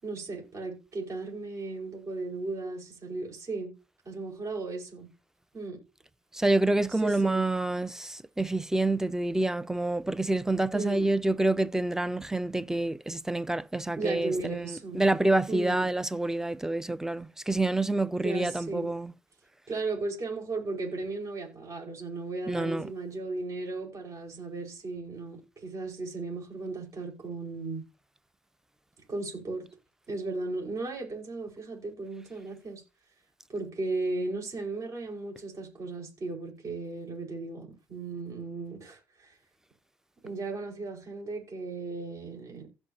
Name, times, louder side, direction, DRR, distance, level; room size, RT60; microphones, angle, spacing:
voice 1, 0.0-3.7 4.0-5.1 5.5-5.8 7.0-7.4 10.7-11.0 13.9-15.0 15.5-15.9 18.2-18.9 19.7-27.8 29.1-29.7 30.1-32.8 33.5-39.3 40.2-42.7, right 3 dB, 45° right, 5.1 m, -36 dB
voice 2, 6.3-19.1 22.5-22.9, right 2 dB, 5° right, 0.5 m, -27 dB
16.0 x 5.4 x 2.8 m
cardioid pair, 95°, 7 cm